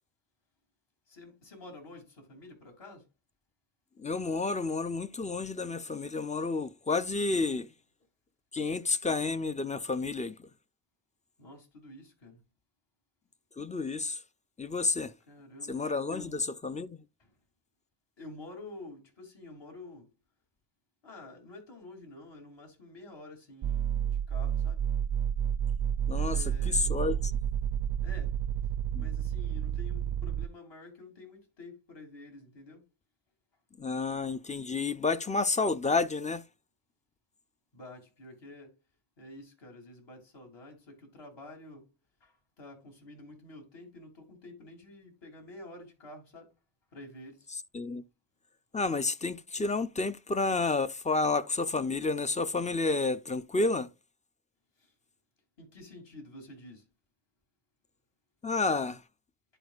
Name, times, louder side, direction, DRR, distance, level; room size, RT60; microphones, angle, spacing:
voice 1, 1.1-3.0 8.6-8.7 11.4-12.4 15.3-15.8 16.1-16.4 17.2-17.3 18.2-20.1 21.0-24.8 26.1-26.9 28.0-28.4 29.0-32.9 37.7-38.8 39.2-41.8 42.2-46.5 46.9-47.5 54.8-54.9 55.6-56.8, left 2 dB, 60° left, 2.9 m, -49 dB
voice 2, 4.0-7.7 8.5-10.5 13.6-14.2 14.6-15.1 15.7-17.0 26.1-27.3 28.9-29.1 33.8-36.4 47.5-48.0 48.7-53.9 58.4-59.0, left 3 dB, 15° left, 0.4 m, -30 dB
sound 1, 23.6-30.5, right 9 dB, 50° right, 0.4 m, -30 dB
11.0 x 4.3 x 2.4 m
cardioid pair, 85°, 48 cm